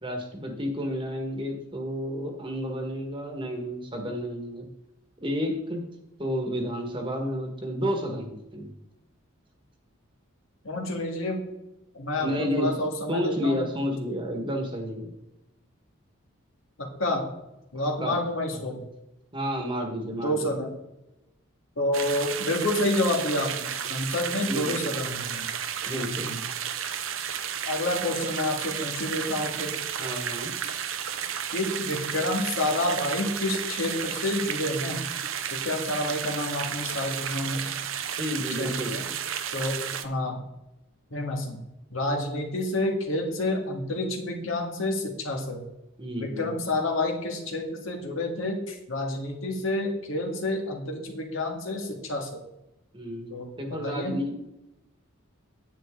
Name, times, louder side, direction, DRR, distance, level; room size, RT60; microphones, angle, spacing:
voice 1, 0.0-4.7 5.2-5.9 6.2-8.7 12.2-12.7 13.1-15.1 18.0-18.2 18.5-18.6 19.3-20.6 24.3-24.9 25.9-26.3 30.0-30.5 38.2-38.9 46.0-46.5 52.9-54.4, equal, 25° right, 3 dB, 1.4 m, -31 dB
voice 2, 10.6-11.5 11.9-13.6 16.8-17.3 17.7-18.8 20.2-20.8 21.8-25.5 26.0-26.4 27.7-29.8 31.5-35.0 35.5-37.7 38.5-39.1 39.5-40.4 41.1-41.6 41.9-45.6 46.2-52.4 53.3-54.2, left 1 dB, 70° left, 1 dB, 1.9 m, -29 dB
sound 1, 21.9-40.1, right 8 dB, 70° right, 0.7 m, -33 dB
9.9 x 8.8 x 3.7 m, 0.92 s
head